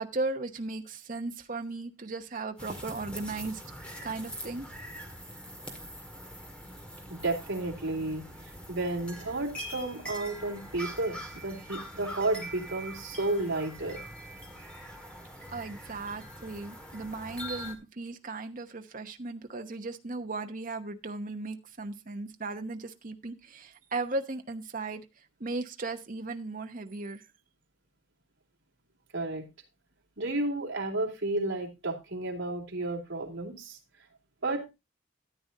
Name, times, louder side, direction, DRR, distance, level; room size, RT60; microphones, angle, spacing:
voice 1, 0.0-3.6 4.0-4.7 15.5-25.0 25.4-27.2, right 3 dB, 40° right, 1.0 m, -36 dB
sound 1, 2.6-17.7, equal, 5° left, 2.0 m, -43 dB
voice 2, 7.2-14.0 29.1-29.4 30.2-33.8 34.4-34.7, right 2 dB, 70° right, 2.8 m, -32 dB
13.5 x 9.5 x 2.7 m
head